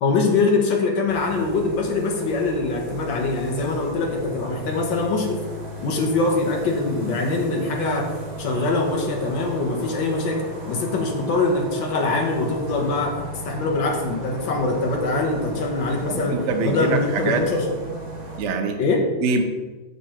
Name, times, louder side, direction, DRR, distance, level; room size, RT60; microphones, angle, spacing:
voice 1, 0.0-5.4 5.8-8.1 8.4-10.4 10.7-13.2 13.5-16.3 16.6-17.6 18.8-19.1, left 3 dB, 80° left, 1 dB, 1.9 m, -23 dB
sound 1, 1.1-18.4, right 1 dB, 25° right, 1.7 m, -35 dB
voice 2, 16.1-17.5 18.4-18.8 19.2-19.4, right 4 dB, 55° right, 5 dB, 0.9 m, -24 dB
6.8 x 6.0 x 4.4 m, 1.2 s
omnidirectional pair, 2.1 m